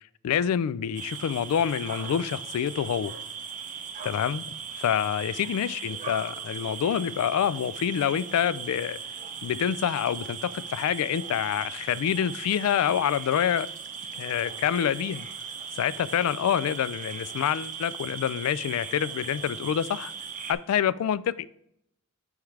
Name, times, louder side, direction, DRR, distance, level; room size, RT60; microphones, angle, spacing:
voice 1, 0.2-3.1 4.0-9.0 9.4-13.7 14.2-15.3 15.7-20.1 20.5-21.5, left 9 dB, 85° left, 0.3 m, -27 dB
sound 1, 0.9-20.5, right 6 dB, 35° right, 0.7 m, -38 dB
9.3 x 3.6 x 3.3 m
head